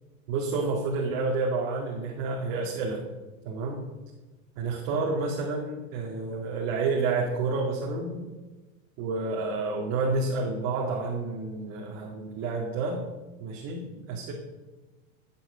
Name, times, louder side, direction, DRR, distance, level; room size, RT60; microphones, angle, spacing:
voice 1, 0.3-3.0 3.5-3.8 4.6-8.2 9.0-13.0 13.4-14.3, right 3 dB, 45° right, -1 dB, 2.3 m, -29 dB
14.0 x 8.2 x 6.3 m, 1.2 s
supercardioid pair, 165°, 40 cm